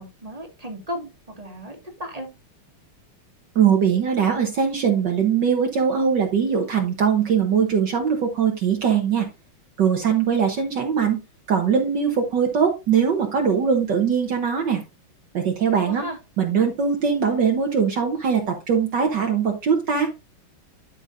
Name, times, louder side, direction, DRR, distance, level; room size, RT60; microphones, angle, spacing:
voice 1, 0.0-2.3 15.8-16.2, equal, 20° right, 3 dB, 1.8 m, -35 dB
voice 2, 3.5-9.3 9.8-11.2 11.5-14.8 15.3-16.0 16.4-20.1, right 7 dB, 60° right, 2 dB, 1.7 m, -21 dB
12.0 x 5.7 x 2.6 m, 0.26 s
omnidirectional pair, 2.4 m